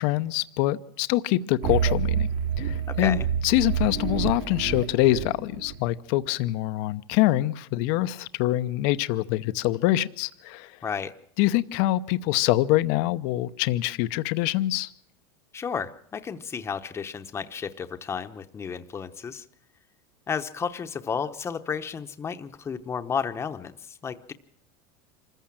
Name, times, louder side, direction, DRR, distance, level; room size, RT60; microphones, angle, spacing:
voice 1, 0.0-2.3 2.6-10.8 11.4-14.9, left 16 dB, 60° left, 13 dB, 0.8 m, -25 dB
sound 1, 1.6-5.7, right 8 dB, 70° right, 4.2 m, -27 dB
voice 2, 2.9-3.3 10.8-11.1 15.5-19.4 20.3-24.3, left 6 dB, 20° left, 7 dB, 1.0 m, -32 dB
26.0 x 14.5 x 7.5 m, 0.70 s
supercardioid pair, 125°, 13 cm